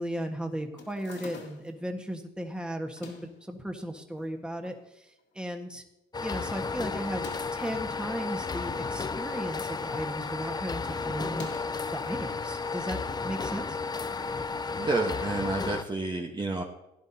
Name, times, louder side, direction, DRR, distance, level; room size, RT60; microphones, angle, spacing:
voice 1, 0.0-5.8 6.2-11.5 11.9-13.8, equal, 5° right, 3 dB, 1.5 m, -36 dB
sound 1, 0.8-1.8 2.8-3.4 4.2-4.8 5.2-5.3 5.5-5.6 7.0-7.7 8.7-9.5 9.8-10.1 11.2-11.9, left 4 dB, 65° left, 2.4 m, -46 dB
sound 2, 6.1-15.8, left 4 dB, 20° left, 0.5 m, -33 dB
voice 2, 14.7-16.6, right 3 dB, 20° right, 1 dB, 1.2 m, -30 dB
17.0 x 10.5 x 2.8 m, 0.90 s
cardioid pair, 90°, 20 cm